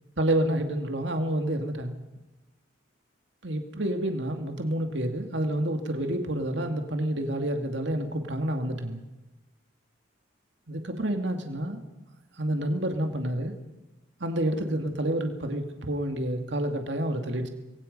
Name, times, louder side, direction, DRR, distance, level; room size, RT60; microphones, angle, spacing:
voice 1, 0.2-2.0 3.4-9.0 10.7-11.8 12.4-13.5 14.2-17.5, right 1 dB, 65° right, 5 dB, 2.4 m, -29 dB
27.5 x 22.0 x 5.5 m, 1.1 s
head